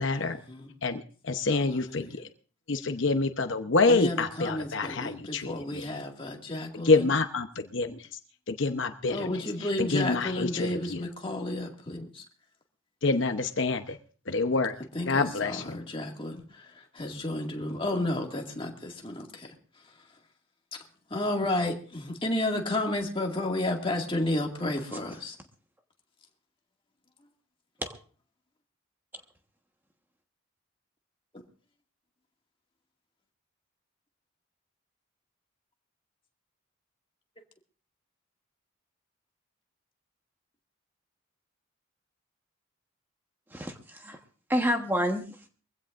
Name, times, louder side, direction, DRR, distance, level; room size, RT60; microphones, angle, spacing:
voice 1, 0.0-0.4 0.8-2.3 2.7-5.9 6.8-8.1 8.5-11.1 13.0-14.0 14.3-14.8 15.1-15.8, left 3 dB, 60° left, 7 dB, 0.9 m, -27 dB
voice 2, 3.9-6.9 9.1-12.2 15.0-16.4 17.0-19.5 21.1-25.3, left 1 dB, 25° left, 2 dB, 2.1 m, -31 dB
voice 3, 24.8-25.3 27.8-27.9 29.1-29.2 43.5-44.2 44.5-45.5, equal, 10° right, 4 dB, 1.2 m, -30 dB
23.5 x 16.0 x 2.5 m, 0.40 s
head